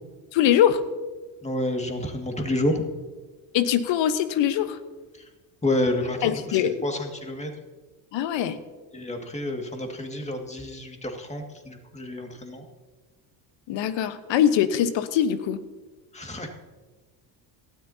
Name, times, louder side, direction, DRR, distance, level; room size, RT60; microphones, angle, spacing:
voice 1, 0.3-0.8 3.5-4.8 6.2-6.9 8.1-8.6 13.7-15.6, left 10 dB, 65° left, 11 dB, 1.1 m, -22 dB
voice 2, 1.4-2.9 5.6-6.4 6.8-7.5 8.9-12.7 16.1-16.5, left 1 dB, 15° left, 3 dB, 2.1 m, -29 dB
18.0 x 13.0 x 2.8 m, 1.3 s
hypercardioid pair, 65°, 48 cm